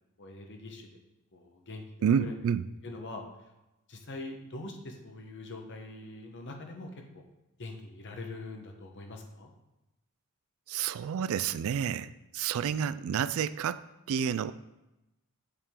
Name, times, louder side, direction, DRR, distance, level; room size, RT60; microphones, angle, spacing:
voice 1, 0.2-0.9 1.3-2.3 2.8-3.2 3.9-7.2 7.6-9.5, left 2 dB, 55° left, 3 dB, 1.0 m, -43 dB
voice 2, 2.0-2.7 10.7-13.8 14.1-14.5, right 8 dB, 65° right, 16 dB, 0.3 m, -29 dB
8.2 x 4.9 x 3.7 m, 0.96 s
head